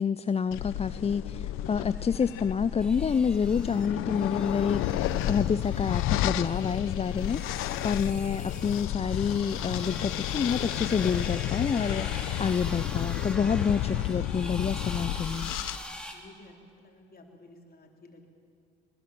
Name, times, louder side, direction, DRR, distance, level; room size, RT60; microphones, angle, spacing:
voice 1, 0.0-7.4 7.8-15.5, left 6 dB, 30° left, 14 dB, 0.5 m, -28 dB
sound 1, 0.5-15.8, left 13 dB, 85° left, 0.7 m, -31 dB
sound 2, 2.8-16.1, left 1 dB, 5° left, 3.4 m, -44 dB
voice 2, 16.1-18.3, left 2 dB, 45° left, 1 dB, 4.0 m, -53 dB
22.0 x 20.5 x 7.6 m, 2.3 s
supercardioid pair, 55°, 21 cm